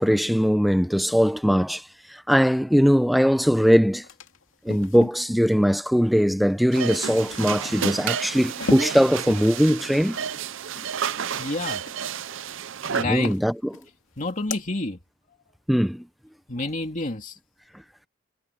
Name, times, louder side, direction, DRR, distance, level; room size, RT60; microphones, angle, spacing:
voice 1, 0.0-1.8 2.1-4.0 4.6-10.2 13.0-13.5 15.7-16.1, equal, ahead, 0.7 m, -20 dB
sound 1, 3.5-3.6 3.9-5.2 6.6-11.5 11.8-12.6 12.9-13.9 14.2-14.6, left 3 dB, 85° left, 2.5 m, -38 dB
sound 2, 6.7-13.0, right 8 dB, 70° right, 0.6 m, -31 dB
voice 2, 11.1-11.8 12.8-13.3 14.2-15.0 15.3-15.4 16.5-17.4, left 2 dB, 40° left, 2.5 m, -29 dB
head